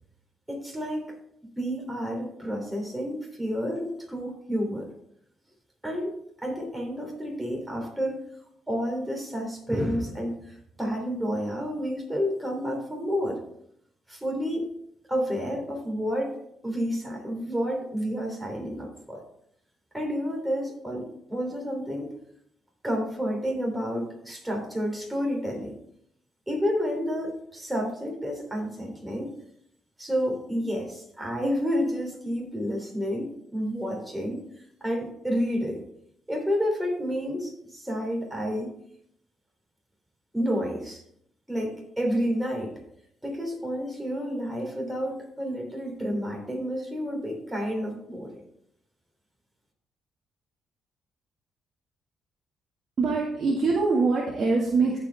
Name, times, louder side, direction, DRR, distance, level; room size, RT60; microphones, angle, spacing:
voice 1, 0.5-1.1 1.6-4.9 5.8-6.2 6.4-8.3 8.7-13.4 14.1-14.7 15.1-16.4 16.6-19.2 19.9-22.1 22.8-25.8 26.5-29.3 30.0-34.5 34.8-35.8 36.3-38.7 40.3-41.0 41.5-42.7 43.2-48.4, equal, 10° right, 0 dB, 3.1 m, -30 dB
voice 2, 53.0-55.0, right 4 dB, 50° right, -4 dB, 1.9 m, -23 dB
14.5 x 5.0 x 3.4 m, 0.72 s
cardioid pair, 90°, 0 cm